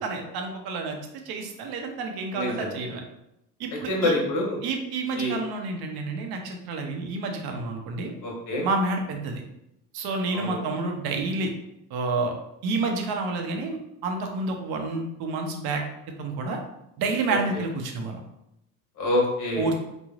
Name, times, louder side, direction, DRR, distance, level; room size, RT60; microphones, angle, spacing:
voice 1, 0.0-1.0 1.3-3.0 3.6-4.1 4.6-8.1 8.6-9.4 9.9-11.5 11.9-12.3 12.6-15.8 16.2-16.6 17.0-18.2 19.6-19.8, right 3 dB, 60° right, 3 dB, 0.7 m, -29 dB
voice 2, 2.3-2.8 3.9-4.6 5.1-5.4 8.2-8.6 10.3-10.6 19.0-19.7, left 1 dB, 45° left, -2 dB, 1.2 m, -26 dB
3.2 x 2.1 x 2.4 m, 0.83 s
supercardioid pair, 85°, 44 cm